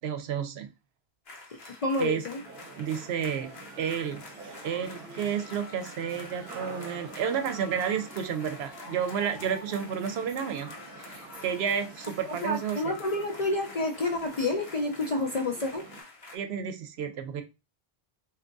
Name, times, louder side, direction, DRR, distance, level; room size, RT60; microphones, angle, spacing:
voice 1, 0.0-0.7 2.0-2.2 2.8-4.2 4.6-12.9 16.3-17.4, right 8 dB, 80° right, 0.8 m, -31 dB
sound 1, 1.3-16.4, left 3 dB, 70° left, 1.0 m, -47 dB
voice 2, 1.8-2.4 12.3-15.9 16.2-16.3, left 2 dB, 55° left, 0.4 m, -29 dB
sound 2, 2.4-16.0, right 3 dB, 55° right, 0.9 m, -47 dB
3.5 x 2.8 x 2.5 m
omnidirectional pair, 1.1 m